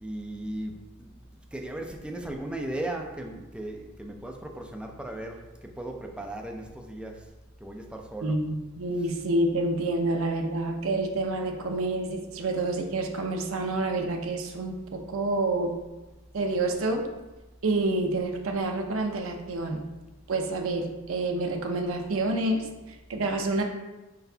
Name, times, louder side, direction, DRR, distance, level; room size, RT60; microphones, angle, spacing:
voice 1, 0.0-7.3 7.6-8.4, right 1 dB, 5° right, 2 dB, 0.4 m, -37 dB
voice 2, 8.2-15.8 16.3-17.1 17.6-19.8 20.3-23.6, right 2 dB, 65° right, 3 dB, 0.6 m, -28 dB
4.6 x 3.9 x 2.7 m, 1.1 s
head